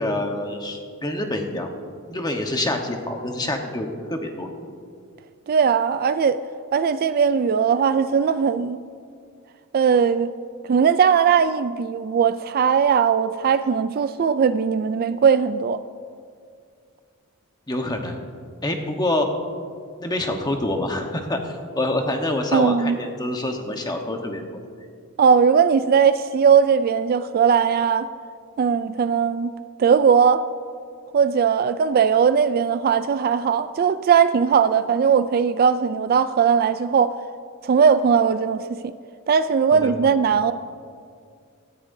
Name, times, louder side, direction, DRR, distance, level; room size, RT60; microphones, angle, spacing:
voice 1, 0.0-1.7 2.1-4.5 17.7-18.2 18.6-19.3 20.0-24.9 39.7-39.9, left 1 dB, 20° left, 1.1 m, -26 dB
voice 2, 5.5-6.4 6.7-8.8 9.7-10.3 10.7-15.8 22.5-23.0 25.2-28.1 28.6-29.5 29.8-30.5 31.1-37.1 37.6-38.9 39.3-40.5, right 6 dB, 45° right, 0.3 m, -19 dB
17.5 x 14.0 x 2.7 m
head